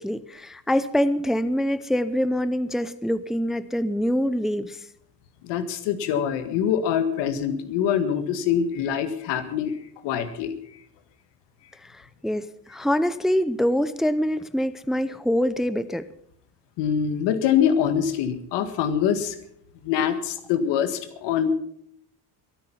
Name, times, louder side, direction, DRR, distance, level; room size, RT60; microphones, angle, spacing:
voice 1, 0.0-4.8 11.8-16.1, equal, ahead, 15 dB, 0.6 m, -25 dB
voice 2, 5.4-9.8 10.0-10.5 16.8-19.4 19.8-21.5, left 8 dB, 80° left, 10 dB, 1.8 m, -24 dB
22.5 x 9.3 x 5.8 m, 0.69 s
cardioid pair, 100°, 41 cm